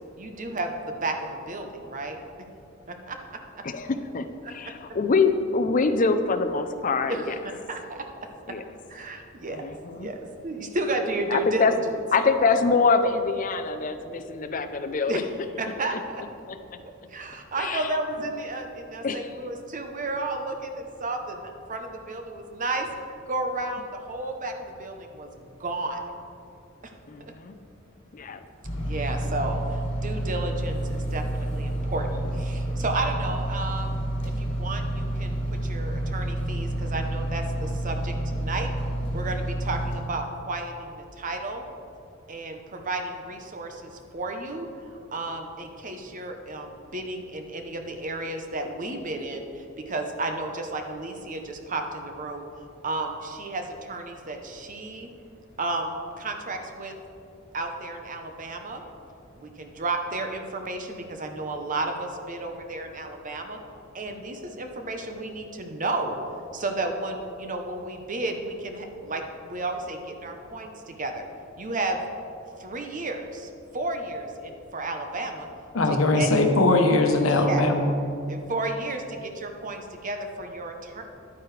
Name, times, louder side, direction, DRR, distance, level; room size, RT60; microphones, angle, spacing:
voice 1, 0.2-2.2 2.9-3.2 3.5-3.6 4.4-4.5 7.1-8.1 8.5-8.6 8.9-9.6 9.9-11.8 15.1-15.3 15.6-16.2 17.1-22.9 23.3-26.0 28.8-38.7 39.1-41.6 42.3-44.7 45.1-52.5 52.8-55.1 55.6-56.9 57.5-58.8 59.3-63.6 63.9-66.2 66.5-71.2 71.6-72.0 72.6-75.5 75.9-76.3 77.3-77.7 78.3-81.0, right 2 dB, 40° right, 4 dB, 0.8 m, -32 dB
voice 2, 3.6-7.4 8.5-8.6 9.5-10.1 11.3-11.7 12.1-15.2 15.9-16.0 16.5-16.6 17.6-17.9 19.0-19.3 27.1-27.6 28.1-28.4, left 4 dB, 40° left, 9 dB, 0.5 m, -25 dB
sound 1, 28.6-40.0, right 1 dB, 60° left, 2.0 m, -29 dB
voice 3, 75.7-77.9, left 2 dB, 80° left, 5 dB, 0.9 m, -20 dB
11.0 x 9.3 x 3.3 m, 2.6 s
head